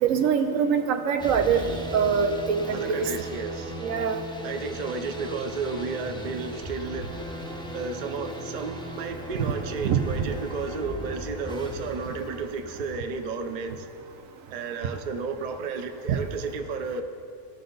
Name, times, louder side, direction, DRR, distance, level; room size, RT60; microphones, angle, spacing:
voice 1, 0.0-3.0 3.8-4.2 9.9-10.0 16.1-16.2, right 7 dB, 75° right, 7 dB, 1.1 m, -24 dB
sound 1, 1.2-13.1, equal, 5° left, 0.5 m, -38 dB
voice 2, 2.7-3.8 4.4-7.2 7.7-13.9 14.5-17.0, right 4 dB, 45° right, 6 dB, 0.6 m, -32 dB
17.0 x 6.6 x 3.9 m, 2.5 s
omnidirectional pair, 1.4 m